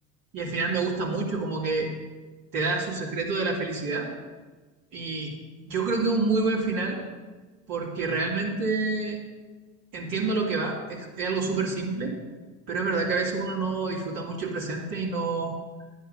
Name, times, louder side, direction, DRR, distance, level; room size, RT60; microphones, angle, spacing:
voice 1, 0.3-1.9 2.5-4.1 4.9-5.3 5.6-7.0 7.7-9.2 9.9-12.1 12.7-15.5, right 3 dB, 45° right, -3 dB, 2.8 m, -28 dB
11.0 x 10.0 x 5.6 m, 1.4 s
hypercardioid pair, 80°, 48 cm